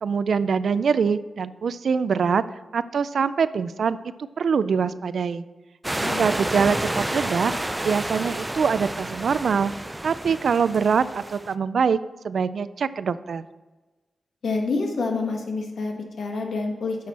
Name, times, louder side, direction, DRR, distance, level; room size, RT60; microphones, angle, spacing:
voice 1, 0.0-2.4 2.7-4.0 4.4-5.4 6.0-7.5 7.8-9.7 10.0-12.0 12.2-13.5, right 6 dB, 75° right, 15 dB, 0.4 m, -23 dB
sound 1, 5.8-11.5, right 1 dB, 15° right, 0.4 m, -30 dB
voice 2, 14.4-17.0, left 3 dB, 80° left, 2 dB, 1.5 m, -27 dB
10.0 x 6.3 x 4.2 m, 1.2 s
wide cardioid pair, 100°, 0 cm